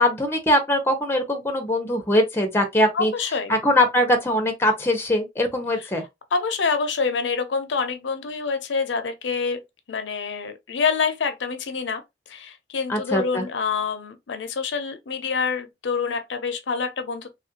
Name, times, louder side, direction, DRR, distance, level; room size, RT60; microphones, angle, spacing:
voice 1, 0.0-3.1 3.5-6.1 12.9-13.5, left 1 dB, 15° left, 0.6 m, -21 dB
voice 2, 2.9-3.5 5.8-5.9 6.3-9.6 9.9-12.0 12.3-17.3, left 5 dB, 80° left, 0.5 m, -26 dB
3.2 x 2.4 x 2.8 m
head